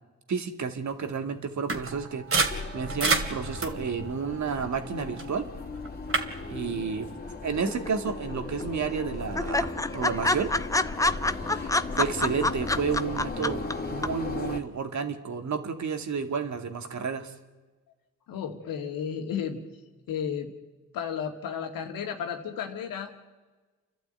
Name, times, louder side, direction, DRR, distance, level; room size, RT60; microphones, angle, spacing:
voice 1, 0.3-5.5 6.5-7.1 7.4-10.5 11.5-17.3, right 5 dB, 55° right, 7 dB, 2.4 m, -31 dB
sound 1, 1.7-5.3 5.8-6.2, right 3 dB, 40° right, 2.8 m, -30 dB
sound 2, 2.5-14.6, left 3 dB, 30° left, 2.8 m, -37 dB
sound 3, 7.7-8.3 8.6-8.7 9.0-9.1 9.4-13.7 14.0-14.1, left 2 dB, 10° left, 0.8 m, -26 dB
voice 2, 18.3-19.6 20.1-20.5 20.9-23.1, left 7 dB, 85° left, 3 dB, 2.4 m, -33 dB
30.0 x 12.0 x 9.2 m, 1.3 s
supercardioid pair, 55°, 33 cm